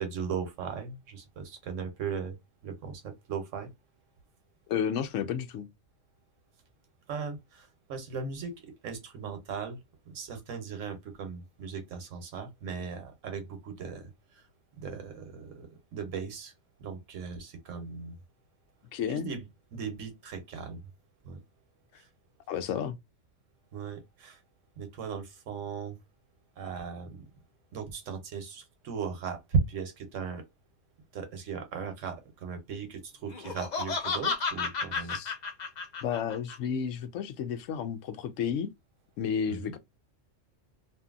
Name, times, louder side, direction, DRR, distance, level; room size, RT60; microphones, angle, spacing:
voice 1, 0.0-2.3 2.6-3.0 3.3-3.7 7.1-9.8 10.1-14.1 14.8-16.5 16.8-18.1 19.1-19.4 19.7-20.8 21.2-21.4 23.7-24.4 24.8-25.9 26.6-27.2 27.7-30.4 31.1-35.2 39.5-39.7, right 5 dB, 80° right, 1.2 m, -37 dB
voice 2, 4.7-5.7 18.9-19.3 22.5-23.0 34.9-35.3 36.0-38.7 39.2-39.8, left 7 dB, 85° left, 1.0 m, -32 dB
Laughter, 33.3-36.6, left 4 dB, 50° left, 0.6 m, -32 dB
2.8 x 2.5 x 2.4 m
omnidirectional pair, 1.3 m